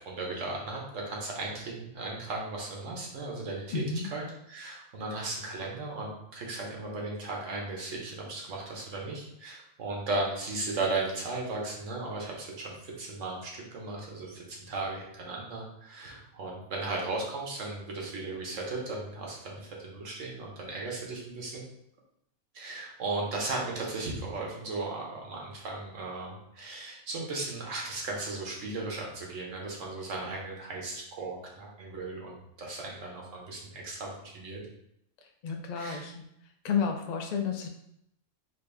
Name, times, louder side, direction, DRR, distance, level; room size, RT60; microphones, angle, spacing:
voice 1, 0.1-3.8 4.1-21.6 22.5-34.6 35.7-36.0, right 3 dB, 70° right, -1 dB, 1.3 m, -36 dB
voice 2, 3.7-4.1 35.4-36.2 36.6-37.7, left 6 dB, 60° left, 3 dB, 0.4 m, -31 dB
3.9 x 2.5 x 3.3 m, 0.77 s
omnidirectional pair, 1.4 m